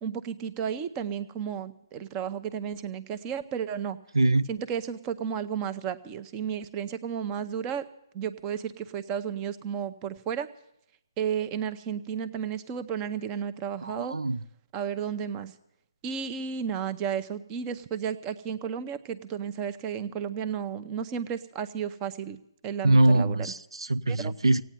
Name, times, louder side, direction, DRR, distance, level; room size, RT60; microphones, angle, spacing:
voice 1, 0.0-4.0 4.5-7.9 8.1-10.5 11.2-14.1 14.7-15.5 16.0-23.5 24.1-24.3, right 8 dB, 20° right, 0.8 m, -33 dB
voice 2, 13.8-14.4 22.8-24.6, right 2 dB, 85° right, 0.6 m, -23 dB
16.5 x 9.2 x 8.9 m
figure-of-eight pair, 150°, 3 cm